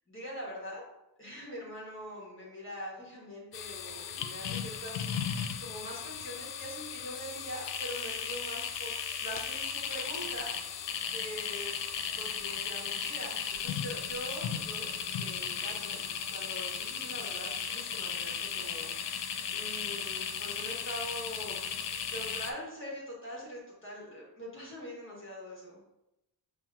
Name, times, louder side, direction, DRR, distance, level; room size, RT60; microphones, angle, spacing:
voice 1, 0.1-0.8 1.2-8.9 9.2-11.7 12.1-14.9 15.2-16.0 16.3-21.6 22.1-25.8, equal, 30° left, -5 dB, 1.1 m, -43 dB
sound 1, 3.5-22.5, left 7 dB, 75° left, 0.5 m, -36 dB
6.0 x 2.8 x 2.3 m, 0.90 s
wide cardioid pair, 145°, 43 cm